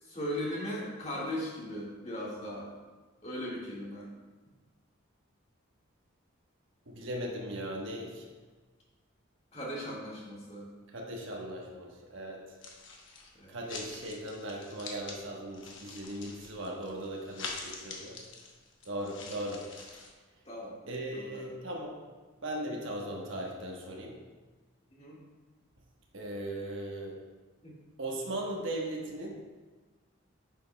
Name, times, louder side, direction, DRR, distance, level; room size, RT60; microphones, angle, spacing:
voice 1, 0.0-2.7 3.2-4.1 9.5-10.7 13.3-13.7 19.2-19.4 20.4-20.8 21.1-21.5 24.9-25.2 27.6-27.7, equal, 30° left, -5 dB, 1.7 m, -38 dB
voice 2, 6.9-8.3 10.9-12.5 13.5-18.2 18.8-19.6 19.9-20.0 20.9-22.0 22.4-24.2 26.1-27.2 28.0-29.4, right 1 dB, 60° right, -1 dB, 1.2 m, -38 dB
sound 1, 12.6-13.3 13.7-15.2 15.5-20.1, left 4 dB, 60° left, 1.0 m, -45 dB
9.1 x 6.8 x 2.2 m, 1.3 s
head